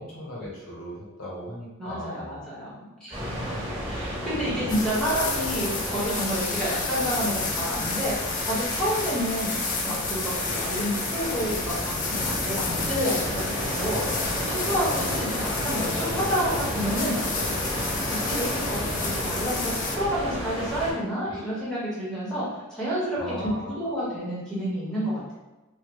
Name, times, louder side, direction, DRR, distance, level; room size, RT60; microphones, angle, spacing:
voice 1, 0.0-2.4 3.3-3.5 4.2-4.7 14.8-14.9 21.3-21.4 23.2-23.9, equal, 90° left, -5 dB, 1.0 m, -38 dB
voice 2, 1.8-3.2 3.9-14.2 14.5-17.1 17.5-17.6 18.1-22.4 22.7-25.3, equal, 5° left, -9 dB, 1.0 m, -29 dB
sound 1, 3.1-20.9, equal, 25° right, 1.0 m, -32 dB
sound 2, 4.7-20.0, left 4 dB, 35° left, 0.3 m, -31 dB
3.3 x 2.1 x 3.0 m, 1.1 s
head